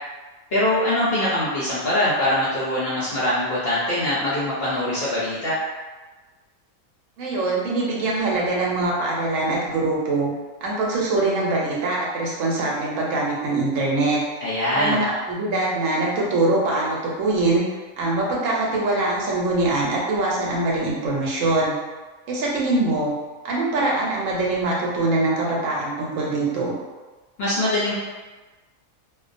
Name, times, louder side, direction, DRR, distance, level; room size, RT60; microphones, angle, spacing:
voice 1, 0.5-5.6 14.4-15.0 27.4-27.9, left 1 dB, 60° left, -8 dB, 0.6 m, -23 dB
voice 2, 7.2-10.3 10.6-14.2 14.7-17.6 18.0-21.7 22.3-23.1 23.4-26.7, right 2 dB, 70° right, -4 dB, 0.9 m, -23 dB
2.4 x 2.1 x 2.5 m, 1.3 s
omnidirectional pair, 1.5 m